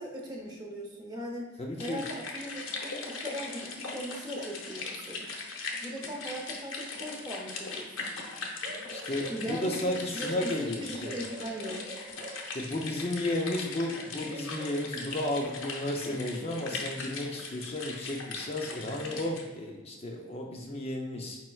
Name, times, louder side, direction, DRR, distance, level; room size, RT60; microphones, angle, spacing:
voice 1, 0.0-1.5 1.8-5.3 5.8-8.2 9.3-11.8, equal, 20° right, 0 dB, 0.7 m, -39 dB
voice 2, 1.6-2.1 8.9-11.2 12.5-21.4, left 1 dB, 30° left, 0 dB, 0.4 m, -33 dB
sound 1, 1.8-19.4, left 3 dB, 75° left, 0.8 m, -40 dB
Bark / Livestock farm animals working animals, 8.6-9.6 11.0-12.5 14.3-15.4, right 1 dB, 45° right, 0.9 m, -46 dB
5.1 x 4.3 x 2.3 m, 1.3 s
head